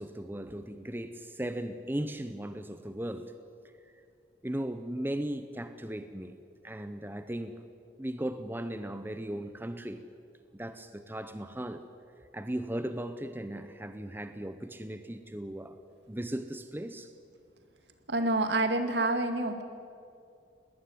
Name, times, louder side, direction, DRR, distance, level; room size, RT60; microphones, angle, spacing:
voice 1, 0.0-3.3 4.4-6.4 6.6-7.6 8.0-10.0 10.5-11.8 12.3-15.8 16.1-17.1, right 1 dB, 10° right, 10 dB, 0.8 m, -37 dB
voice 2, 18.1-19.6, right 2 dB, 75° right, 7 dB, 2.2 m, -27 dB
21.0 x 18.5 x 9.4 m, 2.4 s
head